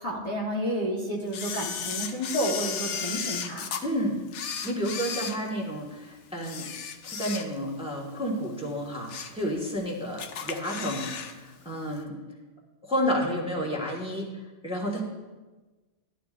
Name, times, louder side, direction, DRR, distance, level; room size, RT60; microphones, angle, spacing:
voice 1, 0.0-3.7, equal, 30° left, -3 dB, 1.2 m, -30 dB
Camera, 1.3-3.8 4.3-5.9 6.4-7.8 8.1-8.3 8.8-9.4 9.8-9.9 10.2-11.3 11.6-11.7, left 7 dB, 75° left, 1.0 m, -34 dB
voice 2, 3.8-4.2 4.6-6.7 7.0-12.1 12.8-14.3 14.6-15.0, equal, 5° right, -3 dB, 1.4 m, -31 dB
12.5 x 11.5 x 2.5 m, 1.2 s
omnidirectional pair, 1.2 m